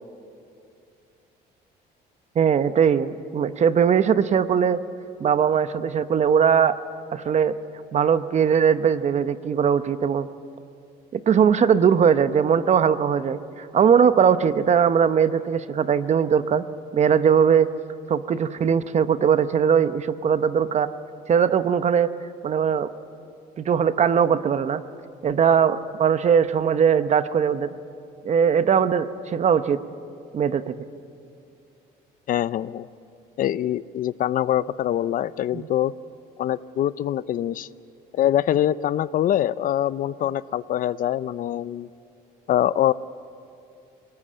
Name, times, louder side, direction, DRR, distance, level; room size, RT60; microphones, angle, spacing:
voice 1, 2.3-4.8 5.2-6.8 7.1-7.5 7.9-10.3 11.1-16.6 16.9-17.7 18.1-20.9 21.3-22.1 22.4-22.9 23.6-24.8 25.2-27.7 28.2-29.8 30.3-30.9 35.5-35.7, right 7 dB, 40° right, 12 dB, 0.9 m, -20 dB
voice 2, 32.3-32.9 33.4-35.9 36.4-37.7 38.1-41.9 42.5-42.9, left 11 dB, 55° left, 18 dB, 0.5 m, -24 dB
22.5 x 19.0 x 8.7 m, 2.5 s
cardioid pair, 110°, 17 cm